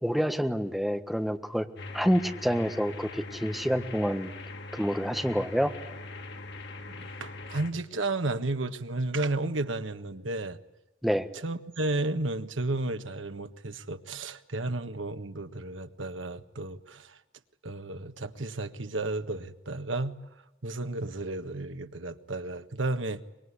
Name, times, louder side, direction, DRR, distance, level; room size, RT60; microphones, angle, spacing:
voice 1, 0.0-1.7 1.9-4.3 4.7-5.7 11.0-11.3, equal, ahead, 1.4 m, -27 dB
sound 1, 1.8-7.7, left 3 dB, 60° left, 2.5 m, -41 dB
voice 2, 6.9-10.6 11.4-17.2 17.6-20.2 20.6-23.2, right 2 dB, 80° right, 1.6 m, -33 dB
25.0 x 22.0 x 9.9 m
head